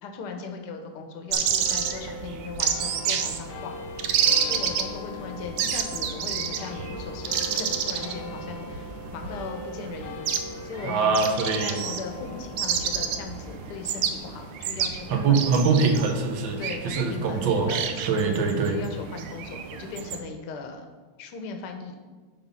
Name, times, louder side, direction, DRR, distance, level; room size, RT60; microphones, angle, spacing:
voice 1, 0.0-10.2 10.6-11.1 11.6-15.9 16.6-18.2 18.6-20.9 21.2-22.0, left 4 dB, 60° left, 4 dB, 1.3 m, -38 dB
sound 1, 1.3-20.2, right 8 dB, 85° right, 1.5 m, -30 dB
sound 2, 1.6-18.3, left 4 dB, 85° left, 1.6 m, -41 dB
voice 2, 10.8-11.8 15.1-17.7 18.1-18.8, right 4 dB, 65° right, 4 dB, 1.6 m, -23 dB
9.1 x 3.6 x 5.6 m, 1.4 s
omnidirectional pair, 2.4 m